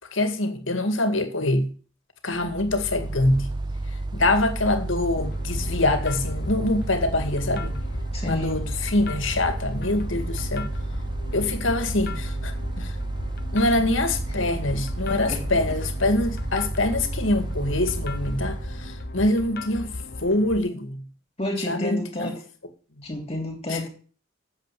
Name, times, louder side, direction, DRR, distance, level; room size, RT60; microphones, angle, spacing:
voice 1, 0.1-1.7 2.2-3.5 4.1-7.8 8.2-10.7 11.3-12.9 13.5-19.9 20.2-21.0 21.7-22.3 23.7-23.8, left 2 dB, 75° left, 2.0 m, -24 dB
Mechanical fan, 2.4-19.2, right 2 dB, 20° right, 0.6 m, -31 dB
sound 1, 5.2-20.6, left 2 dB, 50° left, 0.9 m, -37 dB
voice 2, 8.1-8.5 15.1-15.4 21.4-22.4 23.0-23.9, left 1 dB, 30° left, 3.2 m, -30 dB
9.1 x 7.6 x 8.5 m
head